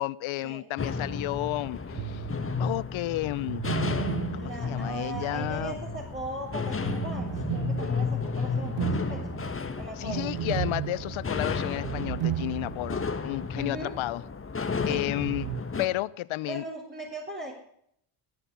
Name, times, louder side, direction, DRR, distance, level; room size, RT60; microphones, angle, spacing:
voice 1, 0.0-2.2 2.6-3.6 4.3-5.8 10.0-14.2 14.8-15.5 15.8-16.6, left 16 dB, 70° left, 21 dB, 0.8 m, -32 dB
sound 1, 0.8-15.9, left 4 dB, 25° left, 1.8 m, -33 dB
sound 2, 1.9-2.6 3.4-6.2 6.8-13.1 13.3-13.4 15.2-15.6, right 14 dB, 65° right, 0.7 m, -35 dB
voice 2, 4.3-9.2 9.8-10.3 13.5-13.9 14.8-15.1 16.5-17.5, right 2 dB, 25° right, -2 dB, 4.2 m, -39 dB
20.0 x 9.9 x 7.0 m, 0.70 s
cardioid pair, 95°, 50 cm